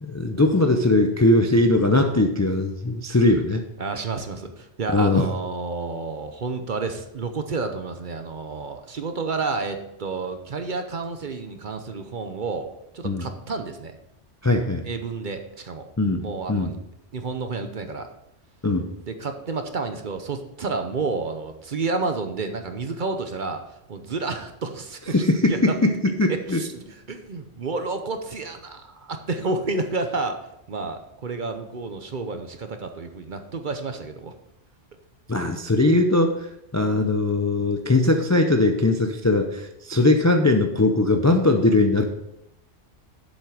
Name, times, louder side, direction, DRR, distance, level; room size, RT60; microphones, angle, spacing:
voice 1, 0.0-3.6 4.9-5.2 13.0-13.3 14.4-14.8 16.0-16.7 18.6-18.9 25.1-25.7 26.2-26.6 35.3-36.5 36.7-42.0, left 2 dB, 25° left, 5 dB, 0.4 m, -20 dB
voice 2, 3.8-13.9 14.8-15.9 16.2-16.8 17.1-18.1 19.1-23.6 23.9-26.0 26.5-30.4 30.7-34.3, right 3 dB, 45° right, 7 dB, 0.8 m, -30 dB
7.6 x 7.3 x 4.8 m, 0.83 s
omnidirectional pair, 1.3 m